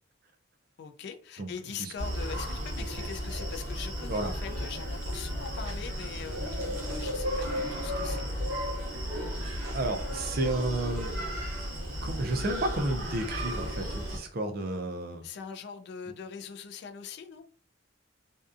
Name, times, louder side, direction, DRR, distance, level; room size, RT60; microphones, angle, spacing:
voice 1, 0.8-8.2 15.2-17.4, left 6 dB, 55° left, 0.3 m, -42 dB
Screaming, 2.0-14.2, equal, 80° right, 0.8 m, -34 dB
voice 2, 9.7-11.1 12.0-15.2, right 2 dB, 45° right, 0.4 m, -31 dB
2.6 x 2.2 x 2.4 m
head